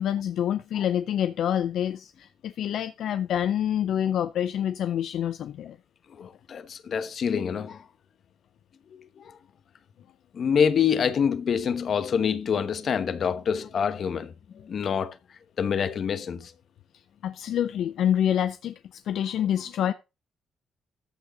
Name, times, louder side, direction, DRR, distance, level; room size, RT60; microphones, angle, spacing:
voice 1, 0.0-5.8 17.2-19.9, left 10 dB, 75° left, 0.5 m, -27 dB
voice 2, 6.2-7.8 8.9-9.4 10.3-15.2 15.6-16.5, left 7 dB, 55° left, 1.1 m, -26 dB
14.0 x 6.4 x 4.0 m
cardioid pair, 90°, 0 cm